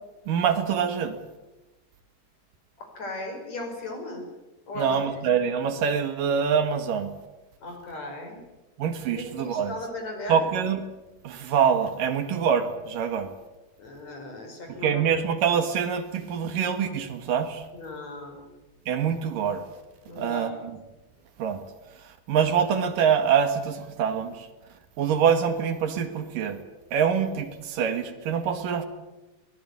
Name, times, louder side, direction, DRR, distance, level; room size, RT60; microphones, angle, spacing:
voice 1, 0.3-1.2 4.8-7.1 8.8-9.7 10.3-10.9 11.2-13.3 14.7-17.6 18.9-19.7 20.2-20.6 21.4-21.6 22.3-24.5 25.0-26.6 26.9-28.9, right 7 dB, 75° right, 8 dB, 3.4 m, -25 dB
voice 2, 2.8-4.2 4.7-5.2 7.6-8.4 9.1-10.5 13.8-15.0 17.7-18.5 20.0-20.5, left 2 dB, 50° left, 3 dB, 6.5 m, -37 dB
22.5 x 19.0 x 9.6 m, 1.1 s
omnidirectional pair, 3.9 m